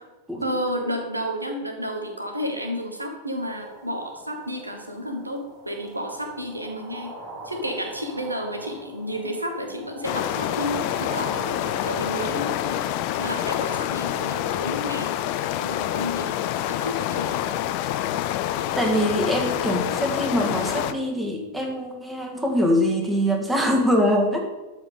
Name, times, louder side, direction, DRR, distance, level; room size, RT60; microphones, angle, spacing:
voice 1, 0.4-7.1 7.4-12.9 13.2-15.2 15.6-17.5, equal, 85° right, 4 dB, 1.4 m, -31 dB
sound 1, 3.4-12.3, right 1 dB, 30° right, 3.0 m, -42 dB
sound 2, 10.0-20.9, left 12 dB, 45° left, 0.6 m, -27 dB
voice 2, 18.8-24.4, equal, 5° right, 2 dB, 1.8 m, -23 dB
13.5 x 4.8 x 5.4 m, 1.2 s
figure-of-eight pair, 90°, 0 cm